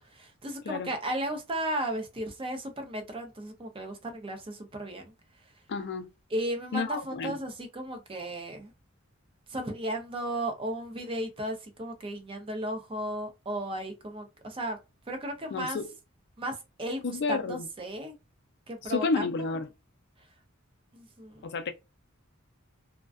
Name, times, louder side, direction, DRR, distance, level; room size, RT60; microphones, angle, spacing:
voice 1, 0.0-5.1 6.3-8.7 9.5-14.8 15.1-15.8 16.4-18.1 18.7-19.5 20.9-21.5, right 1 dB, 25° right, 0.5 m, -35 dB
voice 2, 5.7-6.1 6.7-7.3 15.5-15.9 17.0-17.7 18.8-19.7 21.4-21.7, left 4 dB, 55° left, 0.4 m, -30 dB
2.4 x 2.2 x 2.3 m
head